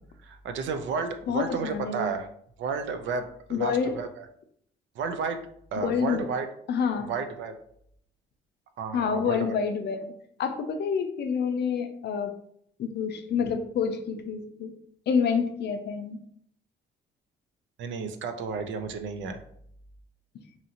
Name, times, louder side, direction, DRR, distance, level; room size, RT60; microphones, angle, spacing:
voice 1, 0.2-2.3 2.6-4.2 5.0-5.4 5.7-6.5 7.1-7.5 8.8-9.6 17.8-19.4, right 5 dB, 70° right, 8 dB, 0.5 m, -32 dB
voice 2, 1.3-2.1 3.5-4.0 5.8-6.3 6.7-7.1 8.9-10.1 10.4-12.3 12.8-14.7 15.1-16.2, left 6 dB, 60° left, 7 dB, 0.5 m, -28 dB
2.8 x 2.6 x 2.8 m, 0.68 s
cardioid pair, 90°, 20 cm